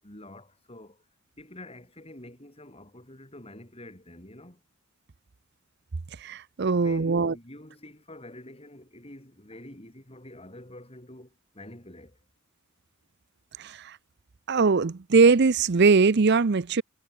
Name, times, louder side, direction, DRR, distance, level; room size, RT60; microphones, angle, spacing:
voice 1, 0.0-1.0 1.4-4.6 6.7-12.2, left 1 dB, 30° left, 7.6 m, -47 dB
voice 2, 6.2-7.3 13.6-14.0 14.5-16.8, right 4 dB, 55° right, 0.6 m, -21 dB
head